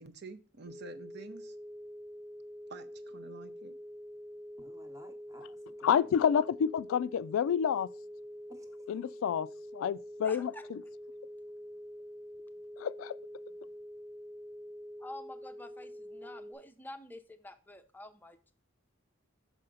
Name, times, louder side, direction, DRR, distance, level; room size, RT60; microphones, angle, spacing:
voice 1, 0.0-1.6 2.7-3.8, right 3 dB, 55° right, 0.7 m, -49 dB
sound 1, 0.6-16.5, equal, 90° right, 1.6 m, -46 dB
voice 2, 4.6-6.1 8.5-8.7, equal, 15° right, 0.9 m, -55 dB
voice 3, 5.8-7.9 8.9-9.5 9.7-10.8 12.8-13.2, left 8 dB, 85° left, 0.3 m, -29 dB
voice 4, 10.2-10.7 15.0-18.5, left 1 dB, 10° left, 0.5 m, -48 dB
6.2 x 5.5 x 3.8 m
head